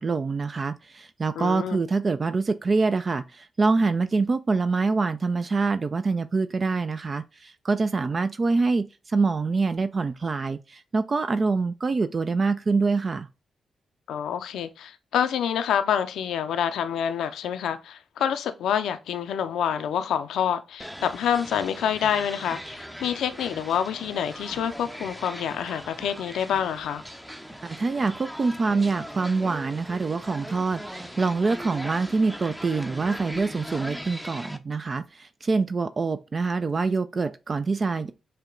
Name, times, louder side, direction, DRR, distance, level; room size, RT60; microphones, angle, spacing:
voice 1, 0.0-13.3 27.6-38.1, right 4 dB, 45° right, 0.3 m, -25 dB
voice 2, 1.4-1.8 14.1-27.0, left 8 dB, 80° left, 0.4 m, -27 dB
sound 1, 20.8-34.6, equal, 5° right, 0.6 m, -40 dB
6.6 x 2.2 x 3.7 m
supercardioid pair, 45°, 0 cm